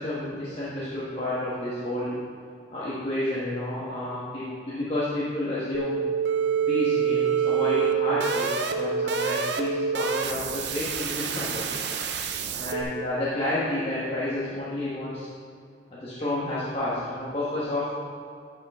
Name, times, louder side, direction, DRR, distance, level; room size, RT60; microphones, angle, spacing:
voice 1, 0.0-2.2 2.7-6.0 6.7-11.6 12.6-15.3 15.9-17.9, left 1 dB, 30° left, -9 dB, 1.3 m, -30 dB
sound 1, 5.7-12.8, right 6 dB, 60° right, 0.6 m, -26 dB
11.0 x 5.6 x 3.6 m, 2.3 s
head